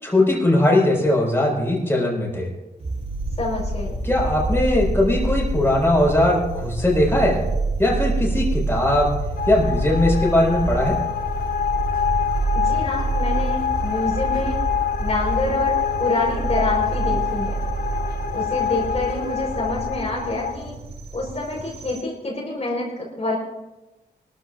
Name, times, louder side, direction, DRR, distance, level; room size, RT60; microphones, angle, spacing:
voice 1, 0.0-2.5 4.0-7.4 7.8-9.1 9.5-11.0, left 1 dB, 15° left, -3 dB, 5.4 m, -19 dB
sound 1, 2.8-22.0, right 2 dB, 40° right, 1.8 m, -27 dB
voice 2, 3.4-4.0 12.5-14.6 15.0-17.6 18.3-20.8 21.1-23.4, left 2 dB, 40° left, -4 dB, 4.7 m, -27 dB
sound 2, 9.4-20.5, left 9 dB, 65° left, 1.4 m, -26 dB
24.0 x 13.5 x 2.6 m, 1.0 s
wide cardioid pair, 105°, 17 cm